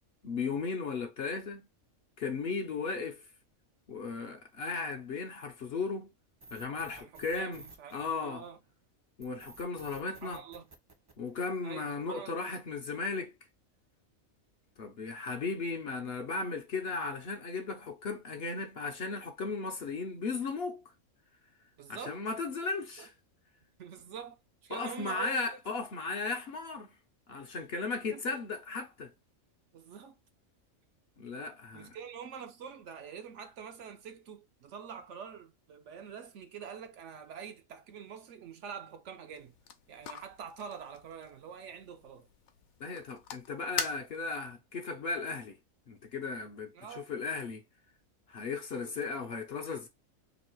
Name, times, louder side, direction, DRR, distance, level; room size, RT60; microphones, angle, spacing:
voice 1, 0.2-1.7 2.2-3.3 3.9-6.1 6.5-7.6 7.9-8.4 9.2-10.4 11.2-13.3 14.8-20.8 21.9-23.1 24.7-27.0 27.3-29.1 31.2-32.0 42.8-45.6 45.9-47.6 48.3-49.9, left 4 dB, 55° left, 0.7 m, -36 dB
sound 1, 6.4-8.7 9.2-11.7, right 3 dB, 35° right, 0.4 m, -53 dB
voice 2, 6.8-8.6 10.2-10.6 11.6-12.5 21.8-22.2 23.0-23.1 23.8-25.4 28.1-28.2 29.7-30.2 31.7-39.5 39.9-42.3 46.7-47.1 48.8-49.4, right 7 dB, 65° right, 0.8 m, -46 dB
sound 2, 39.3-44.5, left 7 dB, 80° left, 1.0 m, -43 dB
3.1 x 2.8 x 4.4 m
omnidirectional pair, 1.4 m